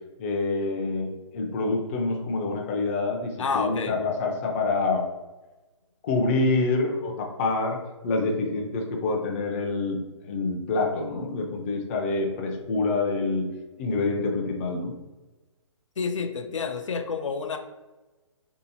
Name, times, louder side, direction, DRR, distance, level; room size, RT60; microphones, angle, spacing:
voice 1, 0.2-5.1 6.0-7.8 8.0-10.0 10.3-13.5 13.8-14.9, left 3 dB, 25° left, 1 dB, 0.5 m, -26 dB
voice 2, 3.4-4.0 16.0-17.6, left 5 dB, 80° left, 6 dB, 0.6 m, -29 dB
3.0 x 2.8 x 4.1 m, 1.2 s
hypercardioid pair, 155°, 16 cm